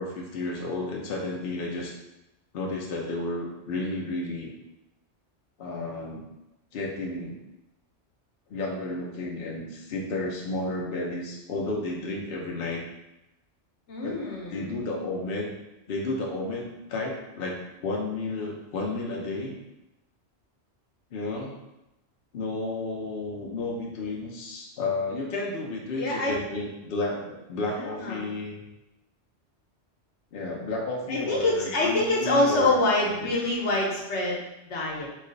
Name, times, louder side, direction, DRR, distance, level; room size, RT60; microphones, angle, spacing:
voice 1, 0.0-1.9 2.5-4.5 5.6-6.3 6.7-7.4 8.5-12.8 14.0-14.2 14.5-15.5 15.9-19.6 21.1-21.5 22.3-28.6 30.3-32.7 33.2-33.3, left 2 dB, 60° left, -1 dB, 0.8 m, -32 dB
voice 2, 13.9-14.8 26.0-26.4 27.7-28.2 31.1-35.1, left 2 dB, 80° left, -2 dB, 1.1 m, -26 dB
3.2 x 2.4 x 3.8 m, 0.94 s
omnidirectional pair, 1.1 m